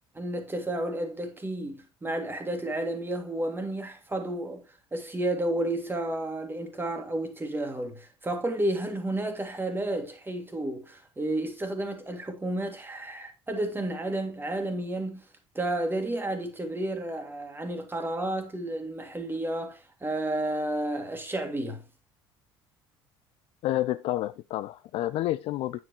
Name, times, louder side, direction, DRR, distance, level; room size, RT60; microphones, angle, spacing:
voice 1, 0.2-4.6 4.9-15.2 15.6-21.8, right 1 dB, 15° right, 1.8 m, -31 dB
voice 2, 23.6-25.8, left 14 dB, 50° left, 0.4 m, -29 dB
8.8 x 5.1 x 2.9 m
figure-of-eight pair, 60°, 13 cm